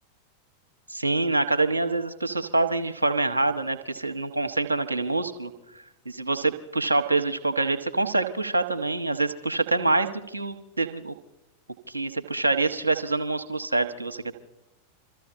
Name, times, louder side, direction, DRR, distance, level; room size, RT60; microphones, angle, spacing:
voice 1, 0.9-5.5 6.0-11.1 11.9-14.3, right 3 dB, 80° right, 8 dB, 0.9 m, -26 dB
27.0 x 14.0 x 2.5 m, 0.92 s
figure-of-eight pair, 90°, 0 cm